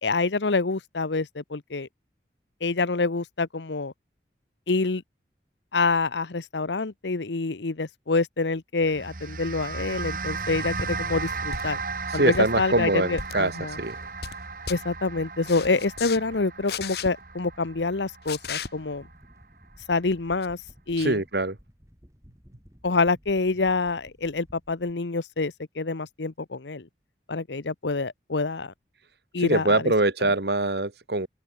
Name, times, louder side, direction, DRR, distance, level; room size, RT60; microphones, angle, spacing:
voice 1, 0.0-1.9 2.6-3.9 4.7-5.0 5.7-11.8 12.1-13.8 14.7-19.0 19.9-20.6 20.9-21.2 22.8-26.9 27.3-28.7 29.3-29.9, left 3 dB, 85° left, 1.0 m, -26 dB
sound 1, 8.8-19.4, right 4 dB, 50° right, 1.8 m, -35 dB
sound 2, 10.8-11.0 11.5-11.9 12.2-12.5 13.1-13.4 13.9-14.4 14.7-14.8 15.4-16.2 16.7-17.1 18.3-18.7 20.4-20.5, left 6 dB, 65° left, 1.5 m, -35 dB
voice 2, 12.1-14.0 21.0-21.6 29.4-31.3, right 2 dB, 70° right, 2.0 m, -24 dB
sound 3, 13.6-24.9, equal, 15° right, 7.1 m, -55 dB
open air
head